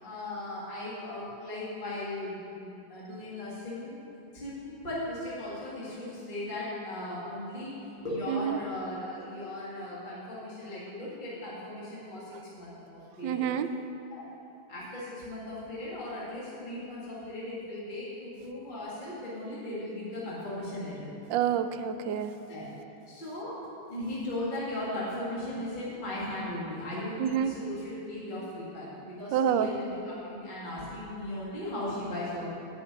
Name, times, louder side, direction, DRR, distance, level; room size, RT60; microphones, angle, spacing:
voice 1, 0.0-4.1 4.3-13.5 14.1-14.2 14.7-21.1 22.5-22.6 23.1-23.6 23.9-32.5, left 1 dB, 25° left, -7 dB, 1.9 m, -37 dB
voice 2, 13.2-13.7 21.3-22.3 27.2-27.5 29.3-29.7, right 9 dB, 80° right, 9 dB, 1.2 m, -27 dB
9.7 x 5.8 x 8.4 m, 2.7 s
omnidirectional pair, 2.0 m